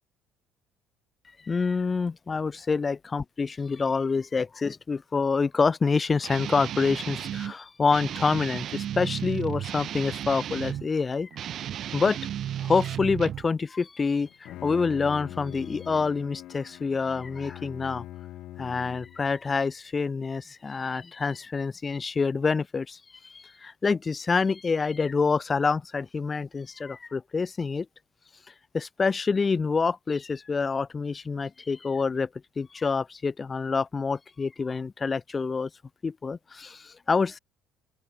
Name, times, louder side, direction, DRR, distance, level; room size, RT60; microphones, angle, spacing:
voice 1, 1.4-11.3 11.9-12.2 12.6-18.0 18.6-27.9 28.7-32.3 32.6-35.7 36.0-37.4, left 4 dB, 20° left, 7.7 m, -27 dB
Guitar, 6.2-7.5 7.9-10.9 11.3-13.5, right 10 dB, 45° right, 3.7 m, -34 dB
Bowed string instrument, 14.2-19.3, left 14 dB, 60° left, 5.0 m, -42 dB
open air
cardioid pair, 140°, 0 cm